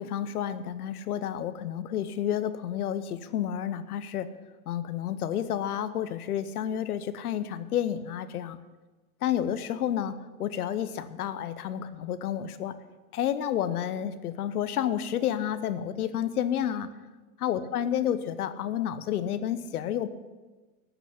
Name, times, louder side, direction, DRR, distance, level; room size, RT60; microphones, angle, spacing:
voice 1, 0.0-4.3 4.7-8.6 9.2-12.7 13.1-16.9 17.4-20.1, left 10 dB, 85° left, 13 dB, 0.9 m, -30 dB
13.0 x 6.0 x 8.1 m, 1.3 s
hypercardioid pair, 95°, 44 cm